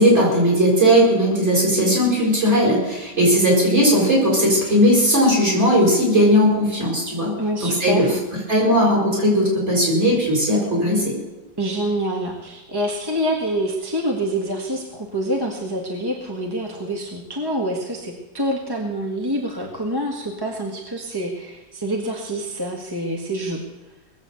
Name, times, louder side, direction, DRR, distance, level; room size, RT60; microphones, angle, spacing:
voice 1, 0.0-8.1 8.5-11.1, equal, 35° right, -3 dB, 6.6 m, -17 dB
voice 2, 3.2-3.5 7.4-8.2 11.6-23.6, right 1 dB, 15° right, 0 dB, 1.5 m, -26 dB
19.5 x 7.9 x 8.2 m, 1.1 s
omnidirectional pair, 2.1 m